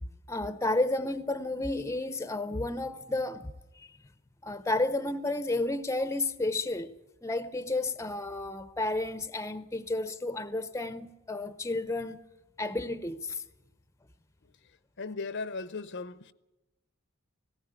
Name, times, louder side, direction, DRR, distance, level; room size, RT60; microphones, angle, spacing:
voice 1, 0.0-3.9 4.4-6.9 7.2-12.2 12.6-13.4, left 2 dB, 15° left, 0.7 m, -32 dB
voice 2, 15.0-16.3, left 4 dB, 55° left, 0.7 m, -37 dB
18.5 x 16.5 x 8.9 m
head